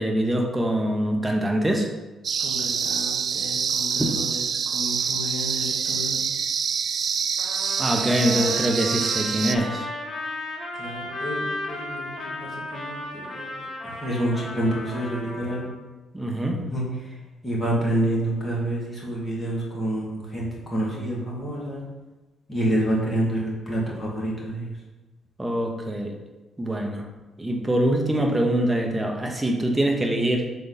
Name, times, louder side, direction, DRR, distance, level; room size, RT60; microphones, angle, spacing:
voice 1, 0.0-1.9 7.8-9.9 16.1-16.6 25.4-26.1 26.6-27.1 27.4-30.5, right 1 dB, 15° right, 1 dB, 1.0 m, -24 dB
sound 1, 2.2-9.5, right 6 dB, 55° right, 0.3 m, -26 dB
voice 2, 2.4-4.4 4.7-6.2 10.8-13.0 13.3-15.6 16.7-16.8 17.4-21.8 22.5-24.7, right 1 dB, 15° left, -5 dB, 2.2 m, -28 dB
Trumpet, 7.4-15.7, left 1 dB, 35° left, 1.5 m, -35 dB
6.8 x 4.0 x 4.0 m, 1.1 s
cardioid pair, 90°, 0 cm